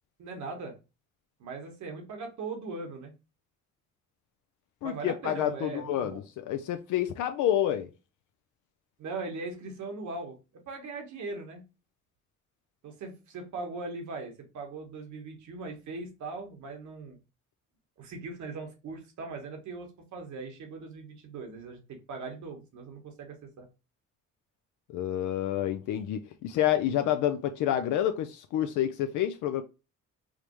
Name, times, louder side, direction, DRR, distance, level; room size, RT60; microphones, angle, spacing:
voice 1, 0.2-0.8 1.4-3.1 4.8-6.2 9.0-10.4 10.7-11.6 12.8-17.2 18.0-23.7, right 3 dB, 70° right, 1.2 m, -39 dB
voice 2, 4.8-7.9 24.9-29.6, left 11 dB, 80° left, 0.4 m, -28 dB
5.0 x 2.0 x 3.0 m
cardioid pair, 90°, 30 cm